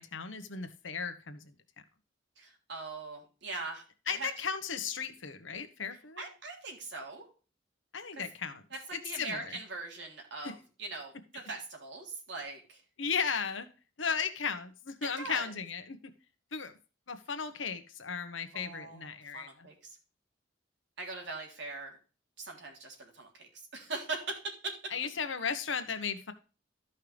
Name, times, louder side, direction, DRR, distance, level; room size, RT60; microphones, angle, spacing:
voice 1, 0.0-1.5 4.1-6.2 7.9-8.6 8.9-9.6 10.4-10.5 13.0-13.7 14.0-16.0 16.5-16.7 17.1-19.7 24.9-26.3, left 6 dB, 85° left, 9 dB, 1.2 m, -35 dB
voice 2, 2.4-4.3 6.2-7.3 8.1-8.2 8.9-12.8 15.0-15.5 18.5-19.7 21.0-22.0 22.4-24.7, right 3 dB, 65° right, 1 dB, 3.3 m, -41 dB
13.5 x 5.6 x 3.4 m, 0.34 s
head